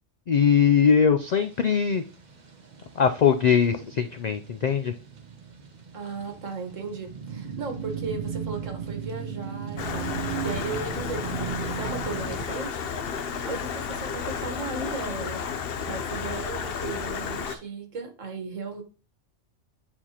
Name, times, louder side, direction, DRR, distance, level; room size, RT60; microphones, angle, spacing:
voice 1, 0.3-2.0 2.9-4.9, left 7 dB, 90° left, 9 dB, 0.3 m, -21 dB
sound 1, 1.2-12.5, right 7 dB, 40° right, 1.0 m, -37 dB
voice 2, 5.9-12.8 13.4-18.8, right 4 dB, 85° right, 5 dB, 1.7 m, -36 dB
Stream, 9.8-17.6, left 6 dB, 55° left, 0.8 m, -32 dB
8.7 x 4.6 x 2.8 m, 0.36 s
omnidirectional pair, 1.3 m